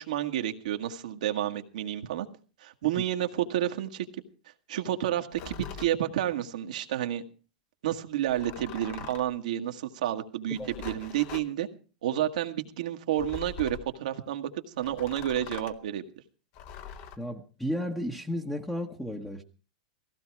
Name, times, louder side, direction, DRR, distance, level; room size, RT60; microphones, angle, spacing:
voice 1, 0.0-2.3 2.6-4.0 4.7-7.2 7.8-11.7 12.0-14.5 14.8-16.0, right 11 dB, 75° right, 5 dB, 1.6 m, -30 dB
sound 1, 5.3-5.9 8.3-9.4 10.5-11.5 13.2-13.9 14.8-15.8 16.5-17.2, left 8 dB, 45° left, 1.3 m, -43 dB
voice 2, 17.2-19.4, equal, 5° left, 2 dB, 1.2 m, -33 dB
17.5 x 15.5 x 4.7 m, 0.38 s
hypercardioid pair, 125°, 4 cm